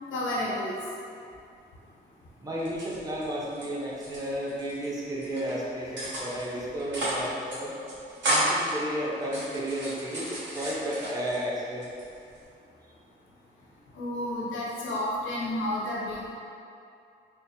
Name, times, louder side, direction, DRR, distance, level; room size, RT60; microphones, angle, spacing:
voice 1, 0.1-0.7 13.9-16.3, left 1 dB, 75° left, -6 dB, 0.9 m, -31 dB
voice 2, 2.4-7.7 8.2-11.9, equal, 20° right, -6 dB, 0.8 m, -33 dB
sound 1, 2.6-3.6 3.9-4.9 5.2-5.5 6.0-6.5 6.8-7.2 7.5-7.6 7.9-8.7 9.2-11.4 11.8-12.4, right 1 dB, 65° right, 1.2 m, -31 dB
3.6 x 2.0 x 4.2 m, 2.5 s
cardioid pair, 110°, 20 cm